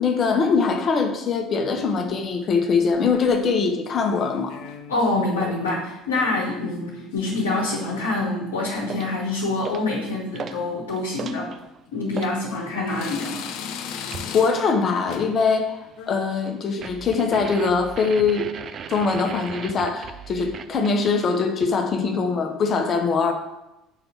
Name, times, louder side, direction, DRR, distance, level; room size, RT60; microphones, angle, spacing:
voice 1, 0.0-4.6 12.5-12.6 14.3-15.8 16.1-18.5 18.9-23.3, left 5 dB, 40° left, 4 dB, 1.0 m, -22 dB
sound 1, 1.5-2.2 2.9-3.5 3.9-5.1 5.4-5.8 6.1-8.1 8.4-8.8 9.4-9.7 10.1-10.2 11.1-11.2 11.9-12.5 12.9-14.8 15.1-15.5 15.8-16.1, left 7 dB, 55° left, 0.5 m, -39 dB
voice 2, 4.9-11.5 11.9-13.4, left 2 dB, 70° left, -3 dB, 1.2 m, -26 dB
sound 2, 8.9-9.2 9.6-10.0 10.3-10.6 11.0-12.4 14.1-14.4 16.8-21.3, right 7 dB, 40° right, 0.4 m, -37 dB
5.8 x 3.9 x 5.8 m, 0.92 s
figure-of-eight pair, 60°, 0 cm